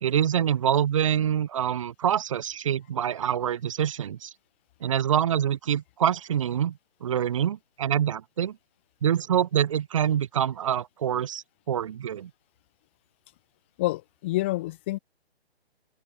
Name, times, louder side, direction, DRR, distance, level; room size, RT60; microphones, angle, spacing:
voice 1, 0.0-4.3 4.8-8.6 9.0-12.3, right 9 dB, 30° right, 1.2 m, -26 dB
voice 2, 13.8-15.0, left 18 dB, 10° left, 0.8 m, -28 dB
open air
hypercardioid pair, 165°, 33 cm